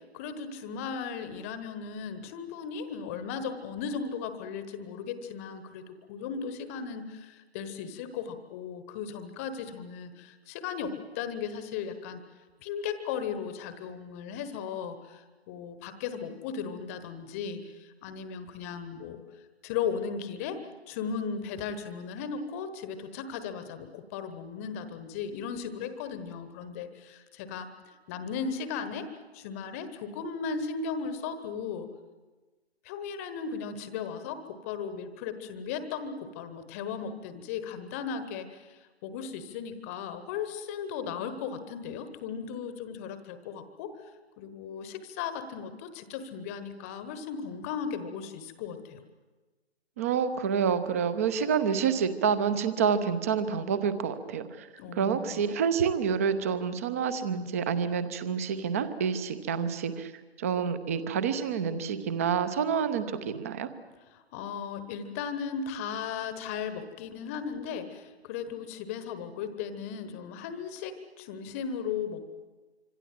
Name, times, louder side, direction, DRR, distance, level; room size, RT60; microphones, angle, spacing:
voice 1, 0.0-12.2 12.6-19.2 19.6-27.7 28.1-31.9 32.8-44.1 44.4-49.0 54.8-55.4 64.1-72.2, left 6 dB, 15° left, 11 dB, 1.1 m, -36 dB
voice 2, 50.0-54.7 54.9-60.1 60.4-63.7, right 7 dB, 15° right, 13 dB, 0.8 m, -28 dB
26.5 x 25.5 x 7.7 m, 1.3 s
figure-of-eight pair, 140°, 33 cm